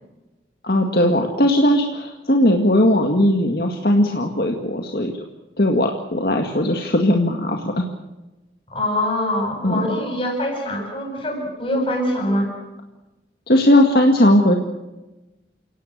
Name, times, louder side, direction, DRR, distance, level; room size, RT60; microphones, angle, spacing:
voice 1, 0.6-5.2 5.6-7.8 9.6-9.8 13.5-14.6, left 1 dB, 55° left, 3 dB, 2.0 m, -18 dB
voice 2, 8.7-12.5, left 1 dB, 30° left, 2 dB, 7.8 m, -24 dB
29.5 x 18.0 x 6.7 m, 1.1 s
head